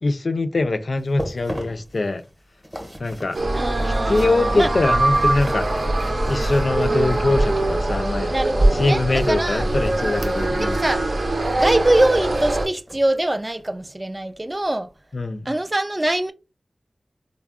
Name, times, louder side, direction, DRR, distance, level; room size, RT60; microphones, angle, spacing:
voice 1, 0.0-2.2 3.0-3.4 4.1-6.0 6.3-8.3 8.7-10.8 15.1-15.5, left 2 dB, 70° left, 0.3 m, -23 dB
sound 1, 1.0-7.7 9.1-10.9 11.2-13.2 13.6-13.8 14.3-14.4, equal, 5° right, 0.7 m, -38 dB
sound 2, 3.3-12.7, right 2 dB, 70° right, 0.6 m, -22 dB
voice 2, 3.5-4.7 6.8-7.4 8.3-10.2 10.6-11.1 11.5-14.9 15.5-16.3, right 1 dB, 25° right, 0.3 m, -23 dB
Waves surf, 4.9-10.5, right 1 dB, 90° right, 0.9 m, -40 dB
3.5 x 2.0 x 2.3 m
wide cardioid pair, 65°, 0 cm